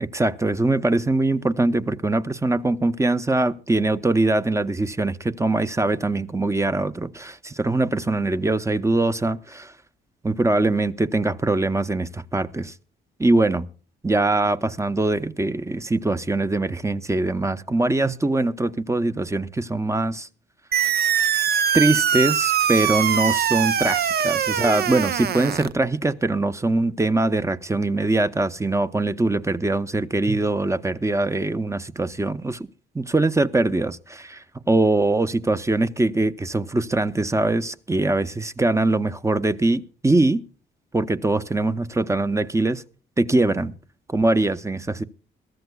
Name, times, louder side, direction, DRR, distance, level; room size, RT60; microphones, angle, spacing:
voice 1, 0.0-9.7 10.2-12.7 13.2-13.7 14.0-20.3 21.7-32.7 32.9-40.4 40.9-42.8 43.2-43.7 44.1-45.0, right 2 dB, 15° right, 0.8 m, -22 dB
sound 1, 20.7-25.7, right 9 dB, 55° right, 0.7 m, -22 dB
22.0 x 14.0 x 2.3 m
cardioid pair, 90°, 20 cm